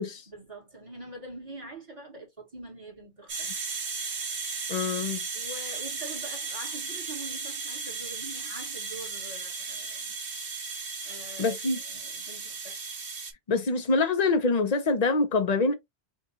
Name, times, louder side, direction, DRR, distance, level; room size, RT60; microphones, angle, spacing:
voice 1, 0.3-3.6 5.3-10.2 11.0-11.6 11.9-12.8, right 2 dB, 30° right, 1.8 m, -44 dB
sound 1, 3.3-13.3, right 4 dB, 60° right, 1.3 m, -35 dB
voice 2, 4.7-5.2 11.4-11.8 13.5-15.7, left 3 dB, 40° left, 0.9 m, -25 dB
5.4 x 2.5 x 2.9 m
omnidirectional pair, 1.1 m